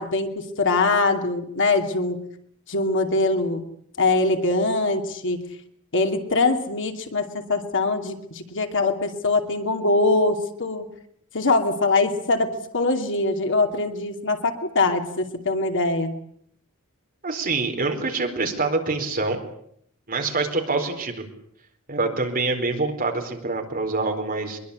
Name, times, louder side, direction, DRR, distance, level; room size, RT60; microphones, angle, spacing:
voice 1, 0.0-2.2 2.7-3.6 4.0-5.4 5.9-10.9 11.3-16.1, left 3 dB, 60° left, 5 dB, 2.7 m, -23 dB
voice 2, 17.2-19.4 20.1-21.2 21.9-24.6, right 3 dB, 40° right, 4 dB, 4.4 m, -25 dB
23.0 x 22.0 x 8.4 m, 0.68 s
head